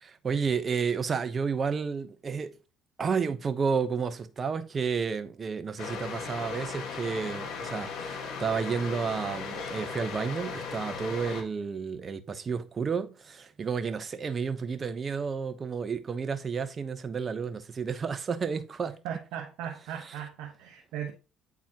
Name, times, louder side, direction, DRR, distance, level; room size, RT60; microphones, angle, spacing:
voice 1, 0.0-2.5 3.0-18.9 20.0-20.1, right 5 dB, 35° right, 0.8 m, -31 dB
sound 1, 5.8-11.4, left 5 dB, 65° left, 1.6 m, -37 dB
voice 2, 19.0-21.1, right 9 dB, 80° right, 1.0 m, -37 dB
8.7 x 4.0 x 2.9 m
supercardioid pair, 80°, 0 cm